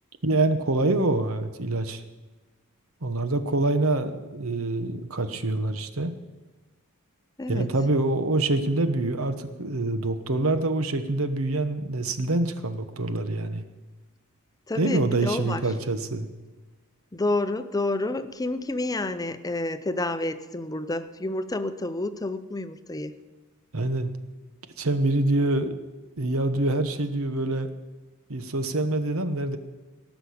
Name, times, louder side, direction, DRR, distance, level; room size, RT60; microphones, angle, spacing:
voice 1, 0.2-2.0 3.0-6.2 7.5-13.6 14.7-16.3 23.7-24.1 24.8-25.7 26.2-27.7 28.3-29.6, right 2 dB, 70° right, 10 dB, 1.1 m, -25 dB
voice 2, 14.7-15.6 17.1-23.2, left 2 dB, 15° left, 12 dB, 0.6 m, -29 dB
17.5 x 6.2 x 8.6 m, 1.2 s
head